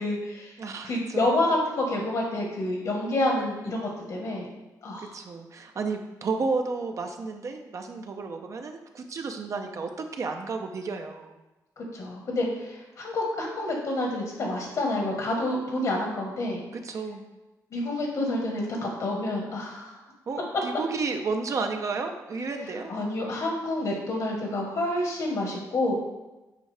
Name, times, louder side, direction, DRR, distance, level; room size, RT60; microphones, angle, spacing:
voice 1, 0.0-0.5 0.8-4.5 4.8-5.1 11.8-16.6 17.7-19.9 22.9-25.9, left 1 dB, 60° left, 0 dB, 1.4 m, -28 dB
voice 2, 0.6-1.3 5.0-11.4 16.7-17.2 20.3-22.9, right 4 dB, 50° right, 5 dB, 0.6 m, -32 dB
9.0 x 4.6 x 3.3 m, 1.1 s
cardioid pair, 125°, 7 cm